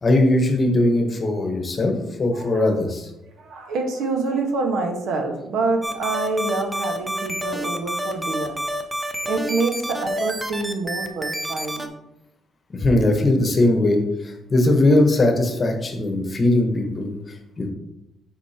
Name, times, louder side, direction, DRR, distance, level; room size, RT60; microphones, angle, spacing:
voice 1, 0.0-3.1 12.7-17.1 17.6-17.7, left 1 dB, 25° left, 3 dB, 1.0 m, -20 dB
voice 2, 2.3-2.7 3.3-8.8 9.1-11.9, right 3 dB, 85° right, 3 dB, 1.2 m, -26 dB
sound 1, 5.8-11.9, right 1 dB, 10° right, 0.5 m, -28 dB
8.1 x 5.2 x 2.8 m, 0.88 s
cardioid pair, 175°, 0 cm